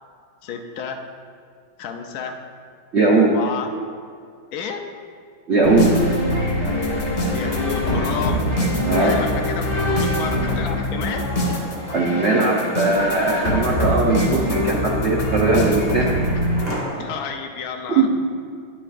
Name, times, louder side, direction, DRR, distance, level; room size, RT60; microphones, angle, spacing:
voice 1, 0.4-1.1 1.8-2.4 3.3-3.7 4.5-4.9 7.3-8.5 9.0-11.3 17.0-18.1, left 6 dB, 80° left, 3 dB, 0.8 m, -31 dB
voice 2, 2.9-3.3 5.5-5.9 8.8-9.1 11.9-16.1 17.9-18.1, right 3 dB, 85° right, -1 dB, 0.6 m, -19 dB
sound 1, 5.6-16.6, left 1 dB, 35° left, 1.6 m, -23 dB
sound 2, 10.5-17.3, equal, 10° left, 1.1 m, -38 dB
10.0 x 9.7 x 2.5 m, 2.2 s
omnidirectional pair, 2.3 m